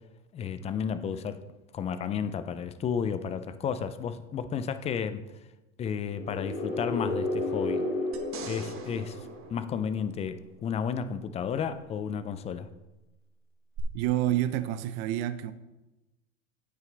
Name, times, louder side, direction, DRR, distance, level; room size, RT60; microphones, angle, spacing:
voice 1, 0.3-1.4 1.7-5.2 5.8-7.8 8.5-9.2 9.5-12.7, left 7 dB, 15° left, 0.3 m, -32 dB
sound 1, 6.0-9.8, left 2 dB, 80° left, 2.9 m, -32 dB
sound 2, 8.1-10.6 13.8-13.9, right 6 dB, 30° right, 1.3 m, -44 dB
voice 2, 13.9-15.5, right 13 dB, 50° right, 0.7 m, -28 dB
9.0 x 8.4 x 3.3 m
hypercardioid pair, 110°, 40 cm